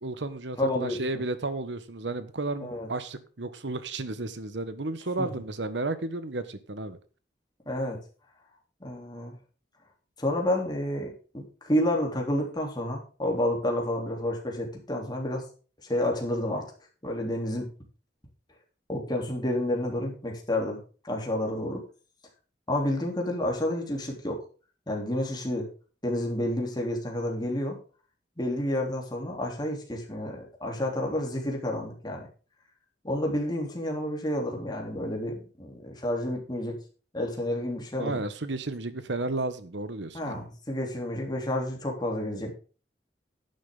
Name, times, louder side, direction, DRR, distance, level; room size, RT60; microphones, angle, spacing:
voice 1, 0.0-7.0 38.0-40.4, right 2 dB, 90° right, 1.2 m, -33 dB
voice 2, 0.6-1.2 2.6-2.9 5.2-5.3 7.6-8.0 8.8-9.3 10.2-15.4 15.8-16.7 17.0-17.7 18.9-21.8 22.7-24.4 24.9-25.7 26.0-27.8 28.4-32.3 33.0-36.8 37.1-38.2 40.1-42.5, left 1 dB, 25° left, 3.3 m, -30 dB
11.0 x 10.5 x 3.8 m
head